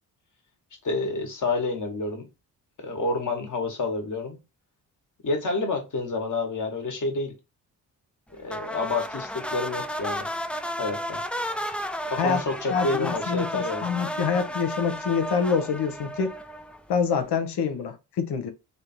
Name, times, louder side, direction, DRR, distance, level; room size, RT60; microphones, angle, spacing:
voice 1, 0.8-2.2 2.8-4.4 5.2-7.3 8.3-10.3 10.8-11.2 12.1-13.9, left 3 dB, 45° left, 1.6 m, -29 dB
sound 1, 8.5-16.9, equal, 5° left, 0.4 m, -33 dB
voice 2, 12.7-16.3 16.9-18.5, left 6 dB, 70° left, 0.9 m, -26 dB
3.3 x 2.6 x 4.4 m
supercardioid pair, 60°, 42 cm